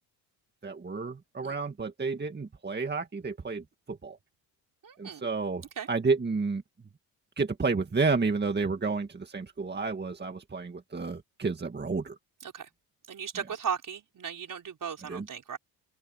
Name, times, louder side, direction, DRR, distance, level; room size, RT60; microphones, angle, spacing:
voice 1, 0.6-4.2 5.0-6.6 7.4-12.2 15.1-15.3, right 4 dB, 25° right, 2.0 m, -31 dB
voice 2, 4.8-5.2 5.8-5.9 12.4-12.7 13.1-15.6, right 7 dB, 50° right, 4.6 m, -36 dB
open air
cardioid pair, 85°, 41 cm